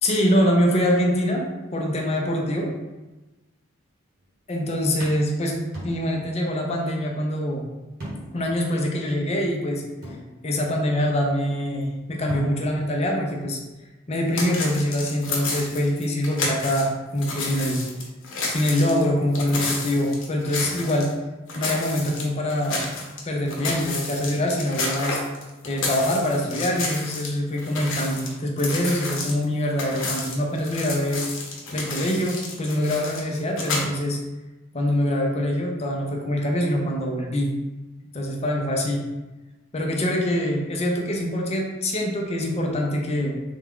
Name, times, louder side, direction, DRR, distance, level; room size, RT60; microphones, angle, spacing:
voice 1, 0.0-1.5 1.7-2.7 4.5-7.6 8.3-9.8 10.4-13.6 14.1-17.9 18.5-21.1 21.5-22.9 23.3-25.2 25.6-31.2 31.7-34.2 34.7-37.6 38.1-39.1 39.7-43.4, equal, 30° left, 0 dB, 0.5 m, -24 dB
sound 1, 4.2-4.5 5.0-6.4 6.7-6.8 8.0-8.5 8.9-9.0 10.0-10.8 11.9-12.0 12.3-12.9, equal, 50° right, 1.1 m, -37 dB
sound 2, 14.3-16.9 17.2-21.1 21.5-23.2 23.5-27.3 27.6-33.8, left 3 dB, 65° left, 0.8 m, -31 dB
3.4 x 2.3 x 3.6 m, 1.1 s
head